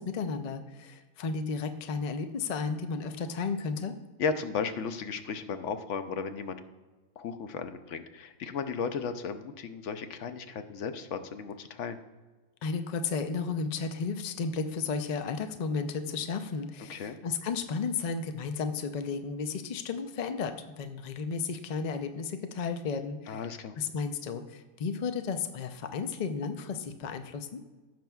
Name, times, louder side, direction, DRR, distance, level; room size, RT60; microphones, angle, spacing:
voice 1, 0.0-4.0 12.6-23.4 23.8-27.6, left 5 dB, 85° left, 8 dB, 0.3 m, -33 dB
voice 2, 4.2-6.6 7.2-12.0 16.9-17.2 23.3-23.7, left 5 dB, 65° left, 9 dB, 0.9 m, -35 dB
15.5 x 6.0 x 2.3 m, 1.2 s
omnidirectional pair, 1.5 m